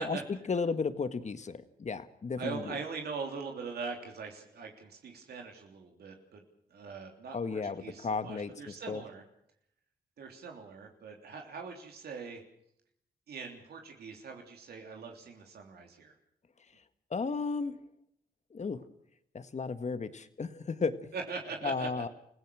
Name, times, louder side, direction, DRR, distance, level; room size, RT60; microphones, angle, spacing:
voice 1, 0.0-2.8 7.3-9.0 17.1-17.8 18.5-18.8 19.3-21.1 21.6-22.1, left 4 dB, 45° left, 11 dB, 1.7 m, -34 dB
voice 2, 2.4-6.4 6.7-9.2 10.2-12.4 13.3-16.1 21.1-22.0, right 5 dB, 80° right, 2 dB, 3.3 m, -42 dB
28.5 x 16.5 x 6.3 m, 0.73 s
cardioid pair, 70°, 16 cm